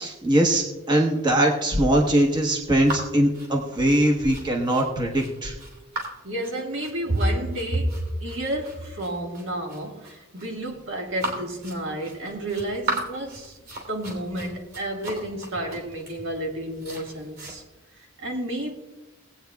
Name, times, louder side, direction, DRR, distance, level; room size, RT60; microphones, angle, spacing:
voice 1, 0.0-5.5, right 1 dB, 20° right, 1.0 m, -21 dB
sound 1, 2.8-17.5, right 2 dB, 45° right, 2.9 m, -37 dB
voice 2, 6.2-13.6 13.9-17.6 17.9-18.7, right 1 dB, 60° right, 1.6 m, -30 dB
20.0 x 8.6 x 2.3 m
head